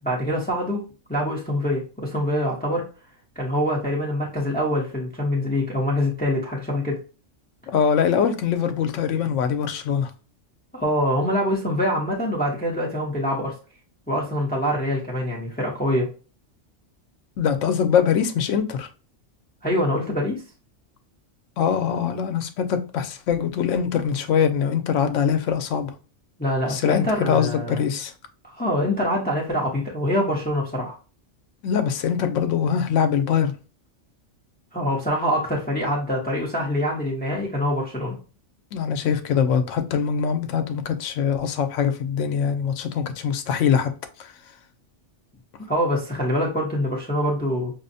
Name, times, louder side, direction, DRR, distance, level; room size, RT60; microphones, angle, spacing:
voice 1, 0.0-0.8 1.1-2.9 3.4-7.0 10.7-13.5 14.1-16.1 19.6-20.4 26.4-27.9 28.5-31.0 34.7-38.2 45.6-47.7, equal, 10° left, 0.7 m, -24 dB
voice 2, 7.7-10.1 17.4-18.9 21.6-25.9 26.7-28.1 31.6-33.5 38.7-43.9 44.2-44.3, left 7 dB, 85° left, 0.9 m, -23 dB
5.7 x 2.0 x 2.6 m
omnidirectional pair, 1.3 m